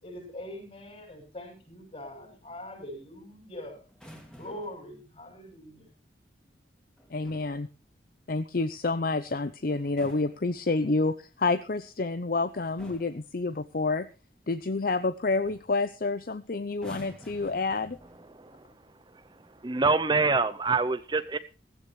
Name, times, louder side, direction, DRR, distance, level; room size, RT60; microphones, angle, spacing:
voice 1, 0.0-3.8 4.4-5.9, left 1 dB, 35° left, 4 dB, 6.9 m, -43 dB
sound 1, 3.9-4.9 7.0-7.6 9.7-11.1 12.1-12.4 12.8-13.3 15.0-15.1 15.4-15.8 16.7-18.4 19.3-19.6, equal, 5° left, 2.8 m, -50 dB
voice 2, 7.1-7.7 8.3-14.1 14.5-18.0, left 3 dB, 50° left, 13 dB, 0.7 m, -29 dB
voice 3, 19.6-21.4, right 4 dB, 25° right, 12 dB, 0.6 m, -25 dB
16.0 x 15.5 x 3.2 m, 0.33 s
head